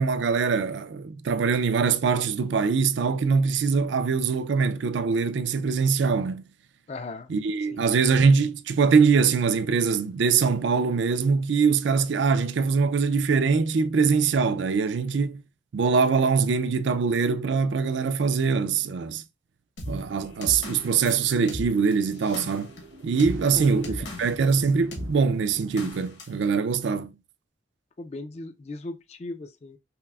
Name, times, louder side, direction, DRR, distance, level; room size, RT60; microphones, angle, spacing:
voice 1, 0.0-6.5 7.3-15.4 15.7-19.2 19.9-22.8 23.0-27.2, right 5 dB, 70° right, 0.4 m, -23 dB
voice 2, 6.9-7.3 7.7-7.8 23.5-24.1 28.0-29.8, left 2 dB, 35° left, 0.3 m, -38 dB
sound 1, 19.8-24.6 24.9-25.1 25.8-26.4, left 1 dB, 65° left, 1.2 m, -38 dB
sound 2, 19.9-25.9, right 1 dB, 90° right, 1.1 m, -46 dB
5.6 x 2.0 x 2.3 m
head